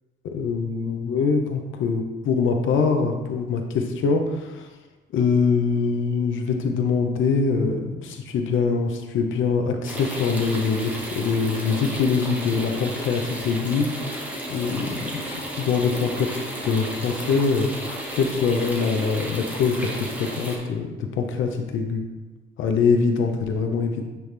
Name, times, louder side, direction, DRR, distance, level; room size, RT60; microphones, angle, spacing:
voice 1, 0.3-4.7 5.1-13.9 14.5-17.7 18.1-22.0 22.6-24.1, left 5 dB, 80° left, 4 dB, 0.7 m, -23 dB
sound 1, 9.8-20.6, equal, 5° right, 1.3 m, -33 dB
9.1 x 3.5 x 3.3 m, 1.2 s
cardioid pair, 90°, 20 cm